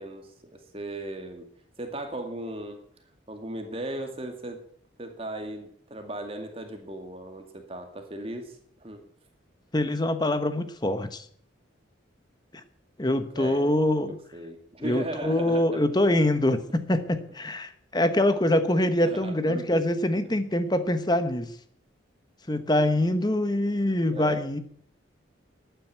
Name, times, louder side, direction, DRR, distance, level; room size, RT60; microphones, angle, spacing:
voice 1, 0.0-1.5 1.8-2.8 3.3-4.6 5.0-9.0 13.3-15.8 19.0-20.4 24.1-24.5, right 1 dB, 30° right, 5 dB, 2.2 m, -37 dB
voice 2, 9.7-11.2 13.0-14.2 14.8-21.5 22.5-24.6, left 1 dB, 20° left, 11 dB, 1.1 m, -24 dB
12.0 x 9.4 x 9.1 m, 0.62 s
head